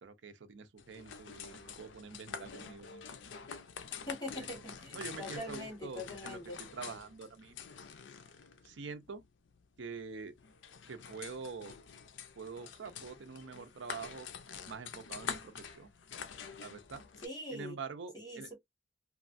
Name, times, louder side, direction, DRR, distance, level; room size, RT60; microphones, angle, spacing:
voice 1, 0.0-3.1 4.4-4.6 4.9-7.6 8.6-9.2 9.8-10.3 10.9-11.8 12.4-14.3 14.7-15.9 16.6-17.0 17.5-18.5, right 5 dB, 75° right, 0.6 m, -46 dB
sound 1, 0.8-17.3, left 6 dB, 75° left, 0.5 m, -47 dB
voice 2, 4.1-6.6 17.2-17.8 18.1-18.6, left 1 dB, 20° left, 1.4 m, -43 dB
3.1 x 2.4 x 2.5 m
head